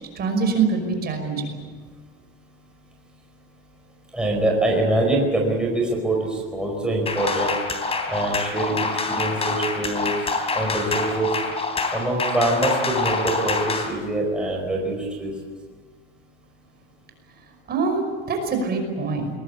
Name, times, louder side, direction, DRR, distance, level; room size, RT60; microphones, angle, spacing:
voice 1, 0.2-1.5 17.7-19.3, right 4 dB, 30° right, 4 dB, 5.6 m, -24 dB
voice 2, 4.1-7.6 8.1-10.3 10.5-11.4 11.9-15.3, right 2 dB, 5° right, -1 dB, 4.8 m, -24 dB
sound 1, 7.1-13.9, left 3 dB, 20° left, 3.5 m, -26 dB
21.5 x 21.5 x 8.5 m, 1.5 s
supercardioid pair, 140°, 30 cm